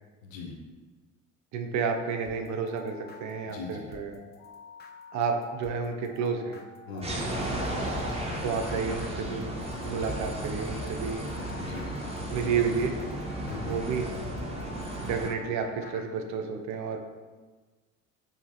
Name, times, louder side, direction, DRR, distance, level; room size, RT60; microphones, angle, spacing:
voice 1, 0.2-0.5 3.4-3.9 6.9-7.3 11.6-11.9 13.4-13.9, left 4 dB, 85° left, 0 dB, 0.7 m, -40 dB
voice 2, 1.5-4.2 5.1-6.6 8.4-9.6 9.8-11.2 12.3-12.9 13.7-14.0 15.0-17.0, right 5 dB, 45° right, 5 dB, 0.5 m, -30 dB
sound 1, 2.2-16.1, left 3 dB, 25° left, 0.4 m, -48 dB
sound 2, 7.0-15.3, right 1 dB, 15° right, 0.9 m, -34 dB
4.7 x 2.7 x 2.8 m, 1.4 s
hypercardioid pair, 60°, 39 cm